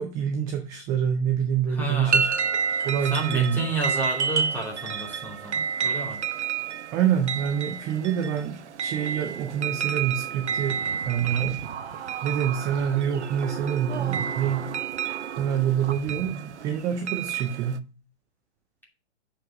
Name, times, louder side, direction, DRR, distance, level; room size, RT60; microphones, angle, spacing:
voice 1, 0.0-2.3 2.8-3.6 6.9-11.6 12.2-14.7 15.4-17.9, right 8 dB, 10° right, 5 dB, 0.3 m, -26 dB
voice 2, 1.7-2.2 3.0-6.2 11.2-11.5 14.4-14.5, right 3 dB, 5° left, -2 dB, 2.5 m, -31 dB
sound 1, 2.1-17.8, right 6 dB, 85° right, 0.7 m, -30 dB
sound 2, 8.9-15.9, right 8 dB, 70° right, 1.1 m, -38 dB
7.6 x 4.9 x 6.0 m, 0.35 s
hypercardioid pair, 130°, 33 cm